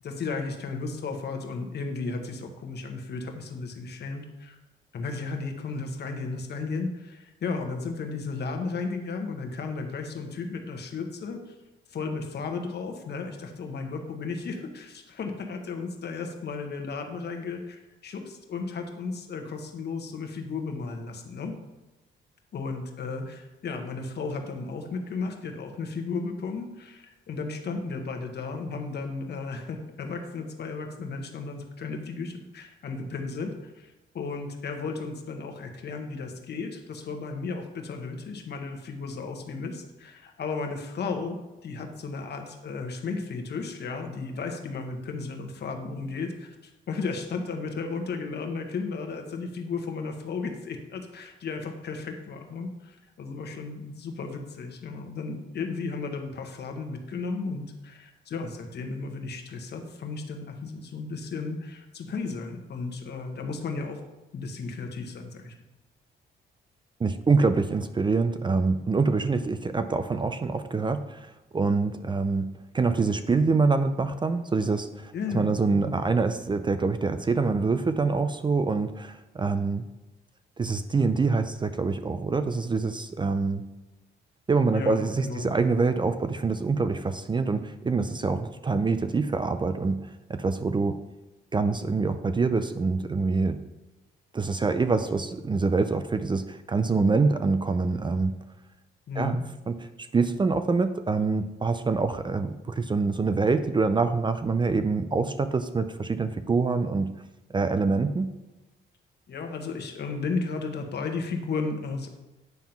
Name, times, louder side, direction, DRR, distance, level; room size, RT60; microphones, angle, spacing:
voice 1, 0.0-4.6 4.9-11.5 11.9-21.5 22.5-41.4 41.6-64.0 64.3-65.5 75.1-75.9 84.7-85.5 99.1-99.4 109.3-112.1, left 4 dB, 55° left, 4 dB, 1.3 m, -34 dB
voice 2, 67.0-79.8 80.6-83.6 84.5-91.0 91.5-93.6 94.3-98.3 99.2-99.4 99.7-99.8 100.1-107.1 107.5-108.3, right 4 dB, 25° right, 10 dB, 0.5 m, -25 dB
9.3 x 3.7 x 5.9 m, 1.1 s
cardioid pair, 90°, 20 cm